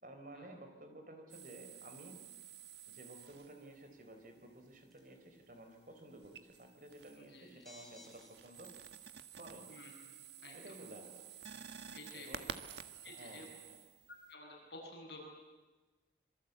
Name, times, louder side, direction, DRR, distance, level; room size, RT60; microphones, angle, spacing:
voice 1, 0.0-2.2 2.9-8.7 9.3-9.7 10.5-11.2 12.1-12.5 13.1-13.8, right 1 dB, 45° right, 6 dB, 4.4 m, -53 dB
sound 1, 1.3-3.8 6.2-7.3 7.6-14.3, right 7 dB, 70° right, 1.5 m, -51 dB
sound 2, 4.9-5.2 7.5-8.3 8.9-9.0 9.4-9.7, left 1 dB, ahead, 4.5 m, -57 dB
voice 2, 7.1-7.6 9.7-10.2 10.4-10.8 11.9-12.5 13.0-13.5 14.1-15.2, left 2 dB, 65° left, 0 dB, 8.0 m, -52 dB
26.5 x 23.5 x 8.5 m, 1.2 s
head